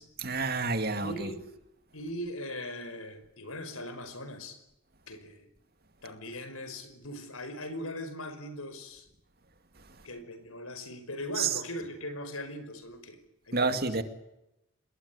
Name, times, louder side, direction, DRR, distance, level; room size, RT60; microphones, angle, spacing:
voice 1, 0.2-1.3 11.4-11.5 13.5-14.0, right 4 dB, 45° right, 2.4 m, -29 dB
voice 2, 1.0-1.5 1.9-4.6 5.1-5.5 6.0-9.1 10.0-13.2 13.5-13.8, left 1 dB, 85° left, 5.3 m, -40 dB
26.5 x 21.5 x 9.8 m
head